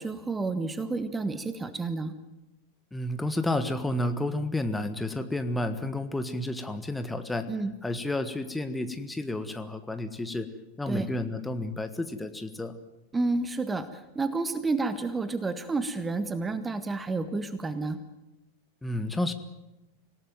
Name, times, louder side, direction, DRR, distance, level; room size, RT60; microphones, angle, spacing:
voice 1, 0.0-2.1 7.5-7.7 10.9-11.1 13.1-18.0, right 3 dB, 15° right, 12 dB, 1.4 m, -30 dB
voice 2, 2.9-7.5 7.8-10.5 10.8-12.8 18.8-19.3, left 1 dB, 5° left, 9 dB, 1.6 m, -31 dB
26.0 x 17.5 x 9.3 m, 0.96 s
figure-of-eight pair, 90°, 0 cm